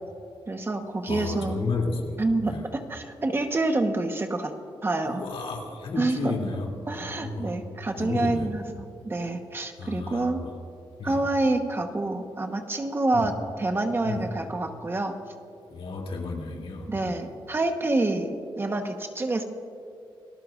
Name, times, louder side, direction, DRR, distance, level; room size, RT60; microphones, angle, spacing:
voice 1, 0.5-1.7 2.2-4.5 4.8-5.2 6.0-6.4 6.9-10.4 11.0-15.1 16.9-19.4, right 2 dB, 25° right, 5 dB, 1.1 m, -27 dB
voice 2, 1.1-2.7 5.0-7.5 8.0-8.5 9.8-10.5 11.0-11.2 13.1-13.3 14.0-14.3 15.7-17.3, left 3 dB, 85° left, 0 dB, 2.9 m, -33 dB
28.5 x 19.0 x 2.5 m, 2.6 s
wide cardioid pair, 155°, 9 cm